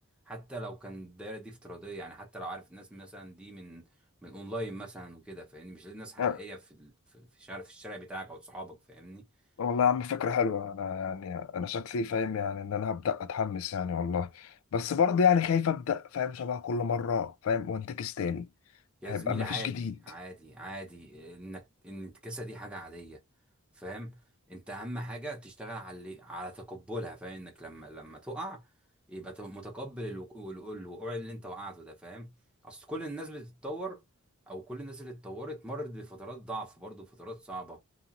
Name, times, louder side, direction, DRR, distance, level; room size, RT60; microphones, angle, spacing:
voice 1, 0.3-3.9 4.2-9.2 19.0-23.2 23.7-24.2 24.5-28.7 29.1-32.3 32.6-34.0 34.5-37.8, right 1 dB, 5° right, 0.8 m, -41 dB
voice 2, 9.6-18.5 19.1-19.9, left 6 dB, 70° left, 0.4 m, -29 dB
2.9 x 2.4 x 2.5 m
head